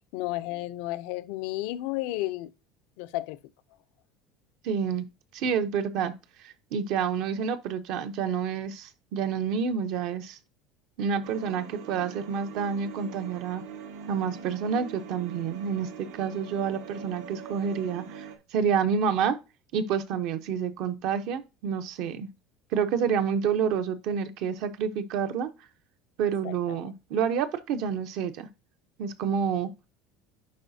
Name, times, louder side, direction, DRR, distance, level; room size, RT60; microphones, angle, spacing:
voice 1, 0.1-2.5 3.0-3.4 26.4-26.5, left 17 dB, 65° left, 0.5 m, -32 dB
voice 2, 4.6-5.0 5.3-6.1 6.4-10.4 11.0-13.6 14.1-15.9 16.2-19.4 19.7-22.3 22.7-25.5 26.2-28.5 29.0-29.7, right 7 dB, 50° right, 0.7 m, -28 dB
sound 1, 11.2-18.4, right 6 dB, 75° right, 1.2 m, -43 dB
10.5 x 4.0 x 2.7 m
cardioid pair, 175°, 0 cm